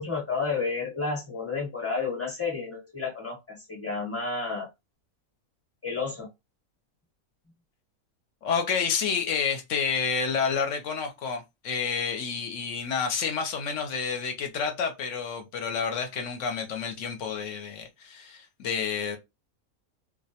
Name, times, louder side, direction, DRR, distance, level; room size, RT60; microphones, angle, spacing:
voice 1, 0.0-4.7 5.8-6.3, left 4 dB, 10° left, 0.8 m, -31 dB
voice 2, 8.4-19.2, left 6 dB, 65° left, 0.9 m, -29 dB
2.4 x 2.1 x 2.7 m
omnidirectional pair, 1.6 m